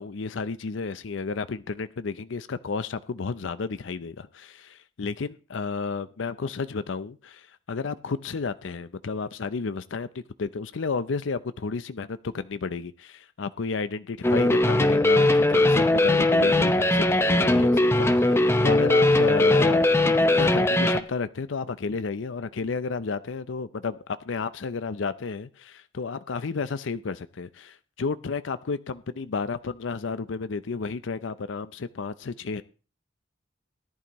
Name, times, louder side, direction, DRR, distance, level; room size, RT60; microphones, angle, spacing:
voice 1, 0.0-24.0 24.2-32.6, left 4 dB, 75° left, 0.5 m, -32 dB
sound 1, 14.2-21.0, left 1 dB, 15° left, 0.7 m, -20 dB
17.0 x 11.0 x 3.0 m
head